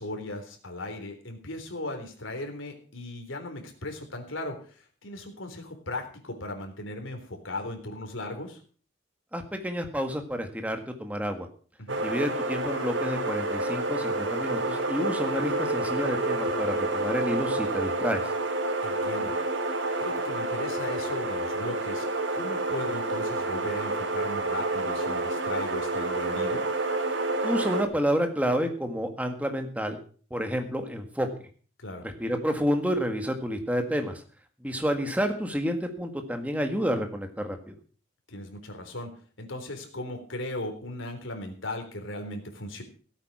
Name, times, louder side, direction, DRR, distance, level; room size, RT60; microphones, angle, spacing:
voice 1, 0.0-8.6 11.8-12.0 18.8-19.3 20.0-22.1 22.3-26.6 31.8-32.1 38.3-39.1 39.4-42.8, left 1 dB, 85° left, 4 dB, 3.8 m, -37 dB
voice 2, 9.3-11.5 12.0-18.2 27.4-30.0 30.3-31.3 32.0-34.2 34.6-37.7, equal, 5° right, 5 dB, 1.9 m, -29 dB
sound 1, 11.9-27.8, right 2 dB, 70° right, 1.9 m, -29 dB
17.0 x 8.8 x 6.1 m, 0.42 s
head